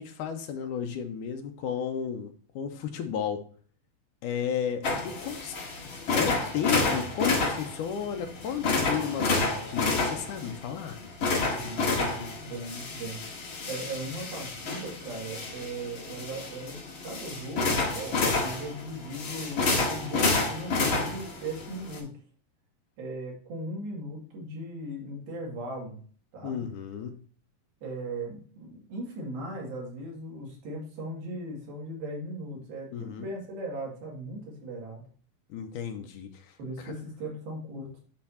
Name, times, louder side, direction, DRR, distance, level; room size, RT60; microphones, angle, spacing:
voice 1, 0.0-3.4 4.2-5.6 6.1-11.0 26.4-27.2 32.9-33.3 35.5-36.9, left 8 dB, 80° left, 6 dB, 2.0 m, -33 dB
sound 1, 4.8-22.0, left 3 dB, 45° left, 1.9 m, -30 dB
voice 2, 11.5-13.2 13.7-22.1 23.0-26.0 26.3-26.6 27.8-35.0 36.6-38.0, right 1 dB, 90° right, -2 dB, 4.1 m, -38 dB
10.5 x 4.5 x 2.8 m, 0.44 s
omnidirectional pair, 4.1 m